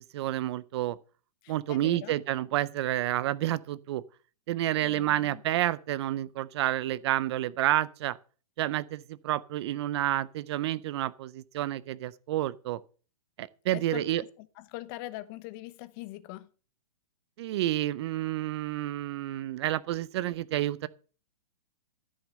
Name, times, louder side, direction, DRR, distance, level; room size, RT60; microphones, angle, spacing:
voice 1, 0.1-1.0 1.5-4.0 4.5-8.2 8.6-12.8 13.4-14.2 17.4-20.9, right 14 dB, 40° right, 0.5 m, -29 dB
voice 2, 1.4-2.1 4.8-5.4 13.7-16.5, left 17 dB, 30° left, 0.8 m, -42 dB
13.5 x 6.3 x 6.5 m
hypercardioid pair, 145°, 21 cm